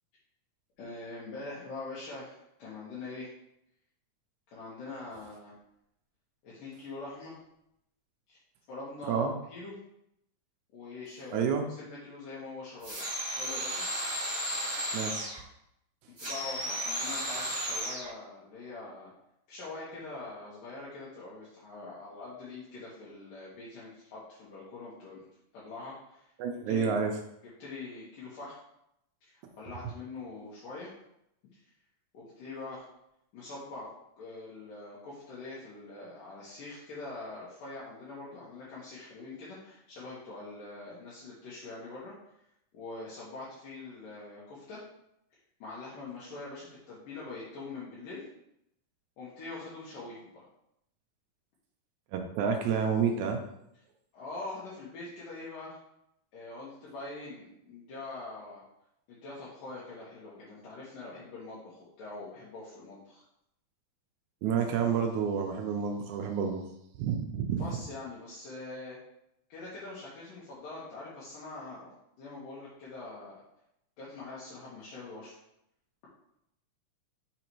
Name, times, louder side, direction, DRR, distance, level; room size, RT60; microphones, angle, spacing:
voice 1, 0.8-3.3 4.5-5.5 6.4-7.4 8.3-8.4 8.7-9.8 10.7-13.0 13.4-13.9 16.1-19.1 19.5-25.3 25.5-26.2 26.7-27.1 27.6-28.6 29.2-30.9 32.1-32.9 33.3-33.9 34.2-42.1 42.7-44.8 45.6-48.2 49.2-50.5 54.1-55.8 56.3-58.6 59.1-63.2 67.6-69.0 69.5-71.9 72.2-73.3 74.0-75.4, left 3 dB, 75° left, -8 dB, 2.8 m, -43 dB
voice 2, 11.3-11.7 14.9-15.3 26.4-27.1 52.1-53.4 64.4-66.6 67.0-67.7, right 6 dB, 80° right, 3 dB, 1.7 m, -29 dB
sound 1, 12.8-15.4 16.2-18.1, equal, 15° right, 0.9 m, -34 dB
5.8 x 3.9 x 4.6 m, 0.80 s
omnidirectional pair, 3.9 m